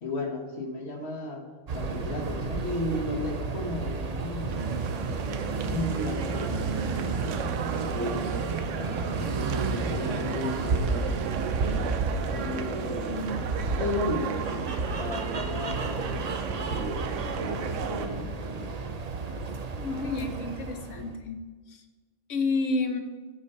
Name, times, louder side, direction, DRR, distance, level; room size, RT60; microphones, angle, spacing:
voice 1, 0.0-1.4 1.7-4.7 5.7-11.2 12.3-13.5 13.8-14.7 15.0-17.1 17.4-18.3, left 1 dB, 60° left, 3 dB, 1.5 m, -34 dB
sound 1, 1.7-21.2, right 3 dB, 40° right, 0.7 m, -32 dB
sound 2, 4.5-18.1, right 7 dB, 80° right, 1.0 m, -35 dB
voice 2, 19.7-21.4 21.7-21.8 22.3-23.0, left 3 dB, 90° left, 7 dB, 1.3 m, -30 dB
13.0 x 5.1 x 5.4 m, 1.4 s
omnidirectional pair, 1.3 m